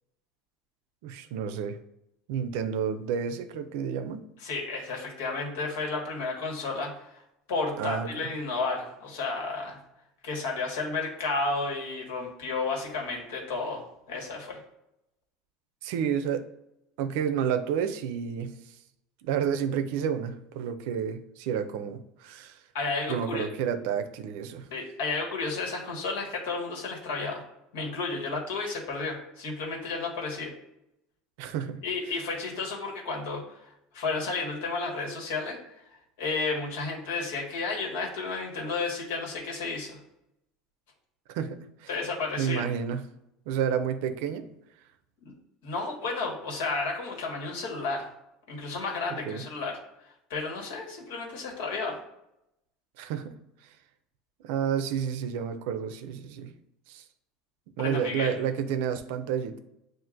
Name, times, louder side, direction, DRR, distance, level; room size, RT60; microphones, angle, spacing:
voice 1, 1.0-1.8 2.3-4.2 7.8-8.3 15.8-16.5 17.0-18.5 19.2-22.6 23.1-24.7 31.4-31.8 41.3-41.9 42.4-43.0 43.5-44.5 49.3-49.4 53.0-53.3 54.4-56.5 56.9-57.0 57.8-59.6, right 8 dB, 75° right, 10 dB, 0.4 m, -30 dB
voice 2, 4.4-7.2 7.5-9.8 10.2-14.6 22.7-23.5 24.7-27.4 27.7-30.5 31.8-33.6 33.9-35.6 36.2-40.0 41.9-42.6 45.2-45.3 45.6-48.1 48.5-49.8 50.3-52.0 57.8-58.3, left 3 dB, 85° left, -1 dB, 1.4 m, -32 dB
7.2 x 2.5 x 2.5 m, 0.85 s
supercardioid pair, 145°, 0 cm